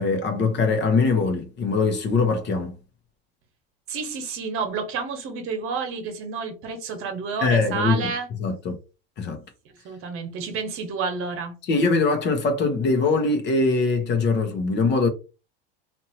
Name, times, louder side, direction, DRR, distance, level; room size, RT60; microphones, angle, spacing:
voice 1, 0.0-2.7 7.4-8.1 8.4-8.8 9.2-9.4 11.7-15.1, left 4 dB, 35° left, 0.9 m, -22 dB
voice 2, 3.9-8.3 9.8-11.6, right 5 dB, 45° right, 1.2 m, -30 dB
2.8 x 2.6 x 2.8 m
supercardioid pair, 110°, 30 cm